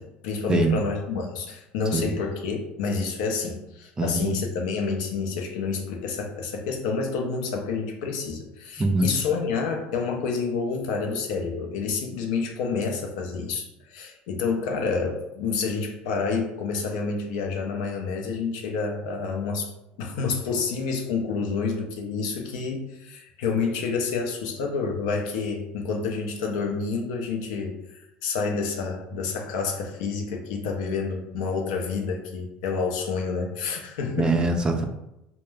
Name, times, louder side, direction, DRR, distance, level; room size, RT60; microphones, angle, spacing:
voice 1, 0.0-19.7 20.0-34.4, left 5 dB, 85° left, 2 dB, 0.5 m, -29 dB
voice 2, 4.0-4.3 8.8-9.1 34.2-34.9, right 2 dB, 20° right, 4 dB, 0.3 m, -23 dB
2.2 x 2.0 x 3.2 m, 0.88 s
supercardioid pair, 105°, 4 cm